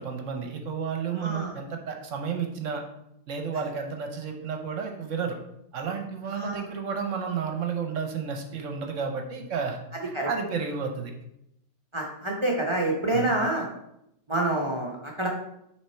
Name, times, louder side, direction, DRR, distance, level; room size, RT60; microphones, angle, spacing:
voice 1, 0.0-2.8 3.3-5.4 5.7-9.8 10.0-11.1 13.1-13.3, right 6 dB, 55° right, 4 dB, 1.0 m, -31 dB
voice 2, 1.2-1.5 6.3-6.6 10.1-10.3 11.9-13.7 14.3-15.3, right 2 dB, 40° right, -1 dB, 0.4 m, -27 dB
6.5 x 3.5 x 4.3 m, 0.80 s
omnidirectional pair, 1.8 m